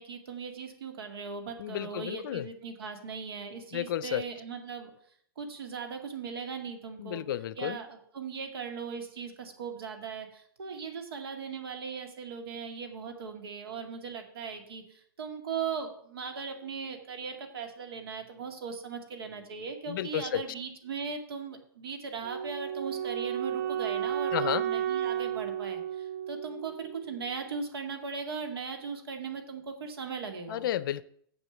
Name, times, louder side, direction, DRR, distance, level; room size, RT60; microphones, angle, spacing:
voice 1, 0.0-4.9 5.4-7.2 7.6-30.7, right 5 dB, 80° right, 2.2 m, -38 dB
voice 2, 1.6-2.5 3.7-4.2 7.0-7.8 19.9-20.4 24.3-24.6 30.5-31.0, left 12 dB, 60° left, 0.6 m, -32 dB
Wind instrument woodwind instrument, 22.2-27.3, right 9 dB, 55° right, 3.3 m, -33 dB
7.2 x 6.7 x 7.1 m
hypercardioid pair, 145°, 12 cm